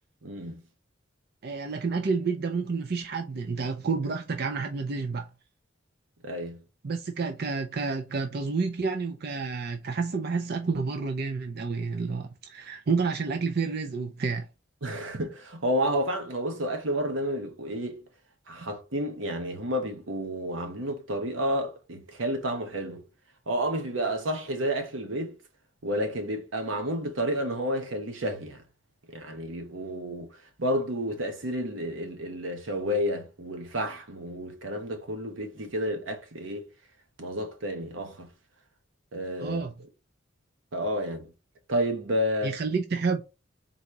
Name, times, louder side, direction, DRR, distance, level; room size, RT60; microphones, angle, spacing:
voice 1, 0.2-0.6 6.2-6.6 14.8-18.0 18.5-23.0 23.5-25.3 25.8-28.6 29.1-30.3 30.6-36.7 37.2-38.3 39.1-39.6 40.7-41.3 41.7-42.5, equal, 85° right, 1.0 m, -30 dB
voice 2, 1.4-5.3 6.8-14.5 39.4-39.7 42.4-43.2, right 4 dB, 55° right, 0.5 m, -29 dB
4.0 x 2.8 x 4.6 m
head